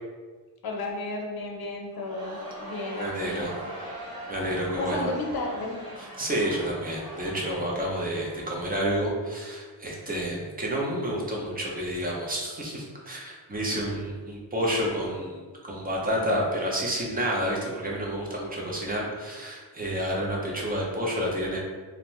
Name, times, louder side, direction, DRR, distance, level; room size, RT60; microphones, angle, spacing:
voice 1, 0.6-3.4 4.8-5.8, left 2 dB, 55° left, 0 dB, 0.6 m, -33 dB
Crowd, 1.9-9.2, right 1 dB, 50° right, 1.2 m, -41 dB
voice 2, 3.0-3.7 4.3-5.1 6.0-15.3 15.7-21.6, equal, 20° right, -3 dB, 0.5 m, -29 dB
2.6 x 2.1 x 3.0 m, 1.4 s
wide cardioid pair, 125°, 44 cm